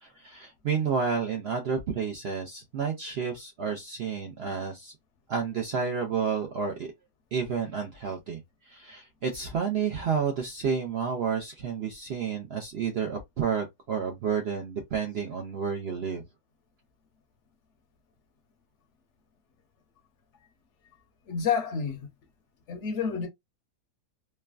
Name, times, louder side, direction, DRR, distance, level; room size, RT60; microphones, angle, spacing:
voice 1, 0.0-4.9 5.3-6.9 7.3-16.2, right 6 dB, 65° right, 0.6 m, -30 dB
voice 2, 21.3-22.1 22.7-23.3, left 6 dB, 60° left, 0.8 m, -29 dB
3.2 x 2.2 x 2.3 m
omnidirectional pair, 1.7 m